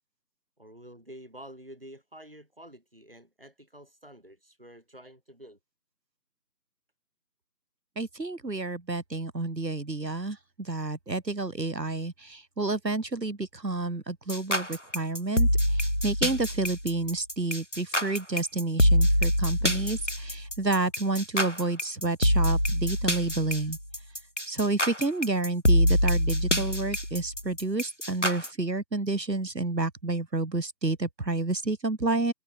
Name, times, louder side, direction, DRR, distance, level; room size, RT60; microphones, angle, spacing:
voice 1, 0.6-5.6, right 1 dB, 35° right, 4.1 m, -49 dB
voice 2, 7.9-23.8 24.5-32.3, right 2 dB, 85° right, 1.8 m, -30 dB
sound 1, 14.3-28.5, equal, 50° left, 0.7 m, -25 dB
figure-of-eight pair, 175°, 49 cm